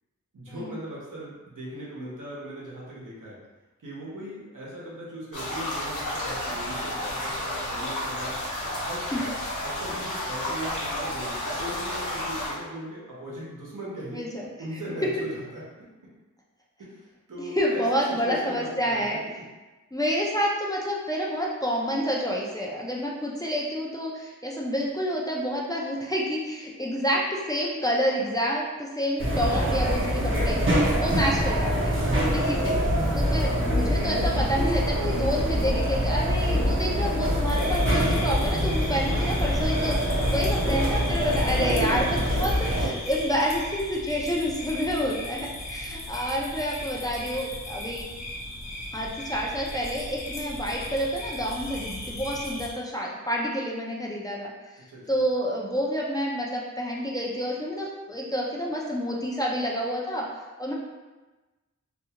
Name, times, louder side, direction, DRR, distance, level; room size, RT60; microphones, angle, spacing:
voice 1, 0.3-3.4 3.8-8.4 8.8-9.2 9.6-14.2 14.6-15.6 16.8-19.1 19.4-19.5 40.5-42.0 42.3-42.4 54.9-55.2, right 1 dB, 85° right, -6 dB, 0.9 m, -39 dB
sound 1, 5.3-12.5, left 1 dB, 75° left, 1.0 m, -31 dB
voice 2, 17.6-19.2 19.9-32.0 32.3-32.8 33.1-42.5 42.8-48.1 48.9-54.5 55.1-60.3 60.6-60.7, equal, 10° left, -4 dB, 0.4 m, -28 dB
sound 2, 29.2-42.9, equal, 40° right, 0.6 m, -24 dB
sound 3, 37.4-52.7, left 1 dB, 60° left, 0.5 m, -37 dB
2.5 x 2.3 x 2.8 m, 1.2 s
wide cardioid pair, 65°, 31 cm